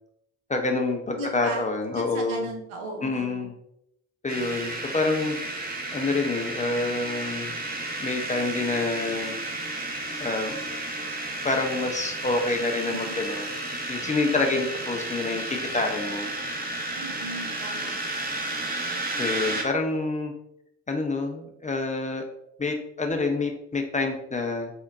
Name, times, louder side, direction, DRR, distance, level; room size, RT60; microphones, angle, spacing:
voice 1, 0.5-2.5 3.0-3.5 4.2-5.4 5.9-7.5 8.0-9.4 10.2-10.6 11.4-13.5 13.9-16.3 19.2-20.3 20.9-22.2 22.6-24.7, left 3 dB, 20° left, 3 dB, 0.4 m, -27 dB
voice 2, 1.2-1.6 1.9-3.5 12.9-13.2 17.0-17.9, right 2 dB, 85° right, 2 dB, 0.6 m, -36 dB
sound 1, 4.3-19.6, right 2 dB, 20° right, 0.7 m, -32 dB
3.7 x 2.1 x 2.3 m, 0.79 s
hypercardioid pair, 40°, 42 cm